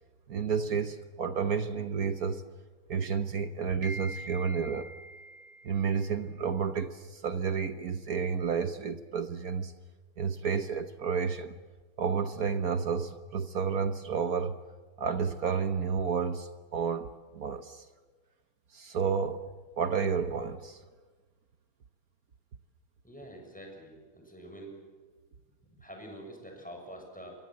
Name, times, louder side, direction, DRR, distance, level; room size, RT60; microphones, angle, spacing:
voice 1, 0.3-2.4 2.9-9.7 10.2-11.6 12.0-14.6 15.0-17.1 17.3-17.8 18.7-19.4 19.8-20.8, right 6 dB, 55° right, 1.2 m, -31 dB
voice 2, 23.0-24.8 25.8-27.4, right 1 dB, 5° left, 6.7 m, -46 dB
27.5 x 23.5 x 7.6 m
omnidirectional pair, 2.4 m